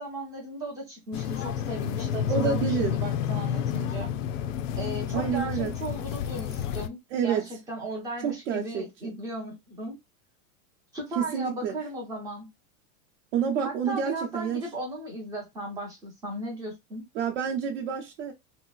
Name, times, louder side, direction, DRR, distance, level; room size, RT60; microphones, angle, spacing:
voice 1, 0.0-4.1 4.8-10.0 10.9-12.5 13.6-17.1, right 1 dB, 10° right, 0.4 m, -36 dB
sound 1, 1.1-6.9, left 9 dB, 70° left, 0.5 m, -30 dB
voice 2, 2.3-2.9 5.1-5.7 7.1-7.4 8.2-9.2 11.2-11.8 13.3-14.6 17.1-18.3, right 7 dB, 65° right, 0.8 m, -28 dB
3.2 x 2.9 x 2.2 m
supercardioid pair, 175°, 40 cm